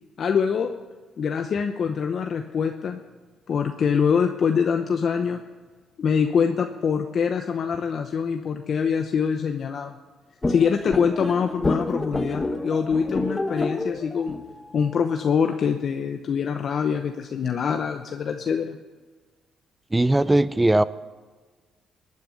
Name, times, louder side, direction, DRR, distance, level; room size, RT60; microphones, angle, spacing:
voice 1, 0.2-0.7 1.2-3.0 3.5-5.4 6.0-9.9 10.5-14.4 14.7-18.8, left 6 dB, 55° left, 5 dB, 0.8 m, -24 dB
sound 1, 10.4-15.5, left 2 dB, 20° left, 1.2 m, -29 dB
voice 2, 19.9-20.8, right 1 dB, 15° right, 16 dB, 0.5 m, -19 dB
18.0 x 9.5 x 7.0 m, 1.4 s
cardioid pair, 90°, 0 cm